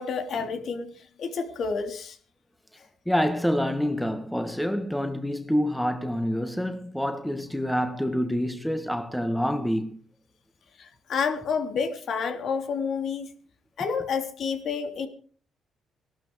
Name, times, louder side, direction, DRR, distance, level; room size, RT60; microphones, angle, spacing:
voice 1, 0.0-2.2 10.8-13.3 13.8-15.1, left 5 dB, 65° left, 3.2 m, -29 dB
voice 2, 3.1-10.0, equal, 5° left, 1.8 m, -27 dB
18.0 x 12.0 x 4.8 m
cardioid pair, 90°, 0 cm